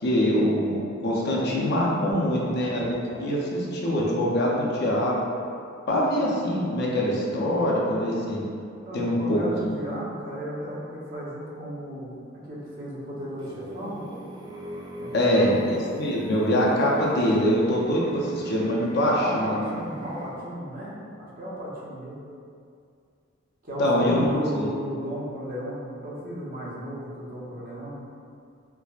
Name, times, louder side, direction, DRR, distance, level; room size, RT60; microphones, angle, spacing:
voice 1, 0.0-5.2 5.9-8.4 8.9-9.8 15.1-19.6 23.8-24.7, equal, 55° left, -4 dB, 0.5 m, -24 dB
voice 2, 8.8-14.0 15.0-15.5 19.2-22.2 23.6-28.0, equal, 45° right, -7 dB, 0.7 m, -35 dB
sound 1, 13.4-20.3, right 1 dB, 25° right, 0.3 m, -41 dB
4.5 x 2.1 x 2.3 m, 2.4 s
head